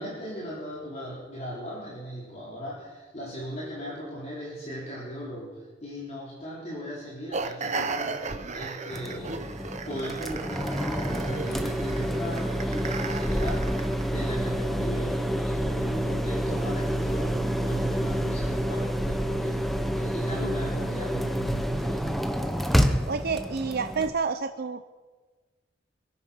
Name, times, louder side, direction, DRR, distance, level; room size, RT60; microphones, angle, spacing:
voice 1, 0.0-9.5 9.9-22.1, equal, 40° left, -6 dB, 3.6 m, -37 dB
sound 1, 7.3-14.1, right 4 dB, 40° right, 1.0 m, -35 dB
sound 2, 8.9-24.1, equal, ahead, 1.0 m, -28 dB
voice 2, 23.1-24.8, right 5 dB, 55° right, 9 dB, 0.6 m, -29 dB
25.0 x 8.8 x 5.7 m, 1.4 s
head